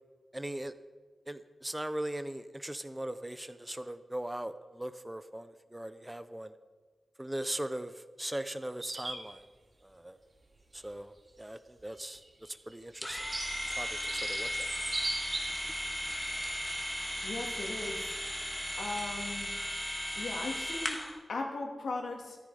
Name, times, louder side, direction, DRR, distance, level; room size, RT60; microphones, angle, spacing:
voice 1, 0.3-0.7 1.3-6.5 7.2-9.5 9.8-10.2 10.7-13.3 13.7-14.7, right 1 dB, 10° right, 12 dB, 0.6 m, -39 dB
sound 1, 8.8-9.2 10.8-10.9 12.0-15.7 16.4-16.6 17.2-17.4, right 2 dB, 35° right, 3.0 m, -38 dB
sound 2, 13.0-21.2, equal, 5° left, 1.7 m, -36 dB
voice 2, 17.2-18.2 18.8-19.5 20.2-22.4, left 3 dB, 80° left, 2 dB, 2.4 m, -38 dB
14.0 x 13.0 x 5.0 m, 1.4 s
wide cardioid pair, 130°, 0 cm